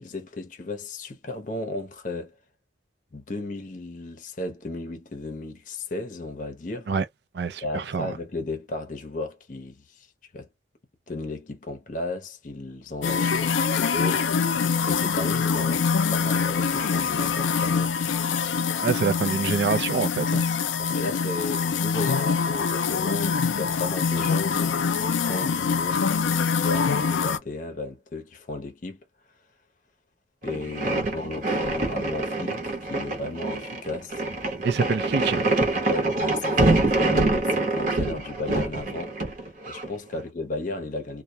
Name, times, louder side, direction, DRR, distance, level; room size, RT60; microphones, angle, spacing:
voice 1, 0.0-2.3 3.1-6.9 7.6-10.1 10.3-10.5 11.1-14.2 14.9-18.0 20.8-29.0 30.4-34.2 35.9-41.2, left 2 dB, 40° left, 0.6 m, -34 dB
voice 2, 7.3-8.1 18.8-20.4 34.6-35.5, right 5 dB, 60° right, 0.4 m, -26 dB
sound 1, 13.0-27.4, left 6 dB, 85° left, 0.4 m, -24 dB
sound 2, 30.4-39.9, right 2 dB, 45° right, 0.8 m, -25 dB
2.2 x 2.1 x 2.6 m
head